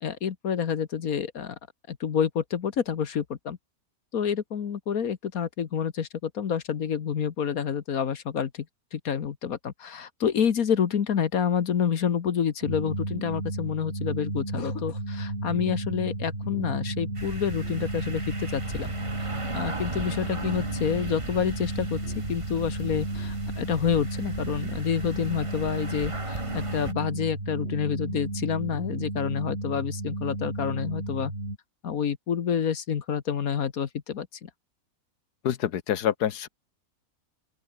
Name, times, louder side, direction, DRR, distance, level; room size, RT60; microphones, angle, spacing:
voice 1, 0.0-1.6 1.9-3.6 4.1-8.6 8.9-18.9 19.5-22.0 22.3-31.3 31.8-34.5, left 7 dB, 65° left, 1.6 m, -28 dB
sound 1, 12.6-31.6, right 2 dB, 45° right, 6.4 m, -33 dB
sound 2, 17.1-26.9, right 2 dB, 20° right, 1.8 m, -38 dB
voice 2, 35.4-36.5, left 10 dB, 80° left, 1.6 m, -26 dB
open air
omnidirectional pair, 1.7 m